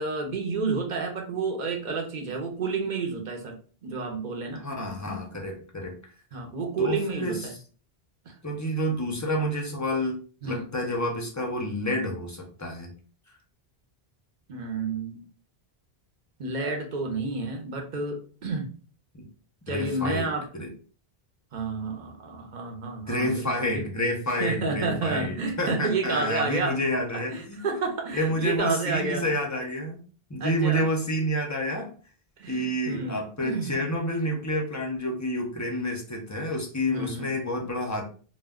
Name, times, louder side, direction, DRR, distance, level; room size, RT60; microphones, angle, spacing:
voice 1, 0.0-3.6 3.8-4.6 6.3-7.5 8.3-8.4 10.4-10.7 14.5-15.2 16.4-18.7 19.7-20.5 21.5-23.9 24.4-26.8 27.1-29.3 30.4-30.8 32.4-33.7 36.9-37.3, right 4 dB, 55° right, 3 dB, 0.7 m, -30 dB
voice 2, 4.6-6.0 6.8-7.4 8.4-10.2 10.4-12.9 19.2-19.3 19.7-20.3 20.5-20.7 23.1-27.6 28.1-30.0 30.3-31.9 32.5-38.0, equal, 30° left, 1 dB, 0.3 m, -29 dB
2.1 x 2.1 x 3.4 m, 0.40 s
omnidirectional pair, 1.1 m